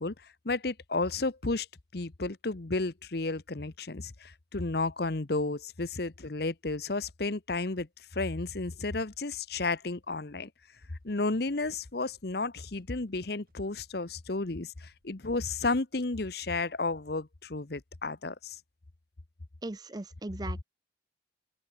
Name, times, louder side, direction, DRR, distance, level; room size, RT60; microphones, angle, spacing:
voice 1, 0.0-1.7 1.9-10.5 11.0-18.6, left 3 dB, 55° left, 1.0 m, -32 dB
sound 1, 10.7-15.8, equal, 50° right, 7.2 m, -69 dB
voice 2, 19.6-20.6, right 2 dB, 20° right, 0.5 m, -38 dB
head